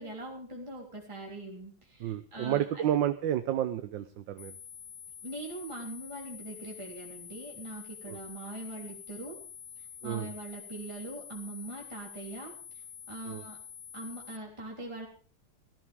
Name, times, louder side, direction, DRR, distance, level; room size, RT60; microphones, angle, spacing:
voice 1, 0.0-2.9 5.2-9.4 9.8-13.6 13.9-15.1, right 2 dB, 15° right, -1 dB, 3.5 m, -42 dB
voice 2, 2.0-4.5 8.1-8.2 10.0-10.3 13.3-13.4, right 11 dB, 75° right, 10 dB, 1.5 m, -30 dB
sound 1, 4.4-14.4, left 8 dB, 40° left, 1.0 m, -47 dB
18.0 x 13.0 x 3.5 m, 0.41 s
omnidirectional pair, 2.1 m